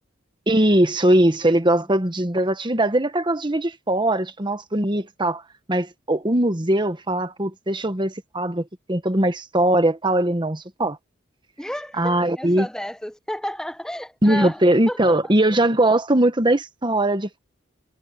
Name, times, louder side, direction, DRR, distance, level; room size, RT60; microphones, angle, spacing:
voice 1, 0.5-5.4 5.7-11.0 12.0-12.7 14.2-17.4, right 1 dB, 25° right, 1.3 m, -20 dB
voice 2, 11.6-15.0, equal, 5° left, 0.7 m, -32 dB
head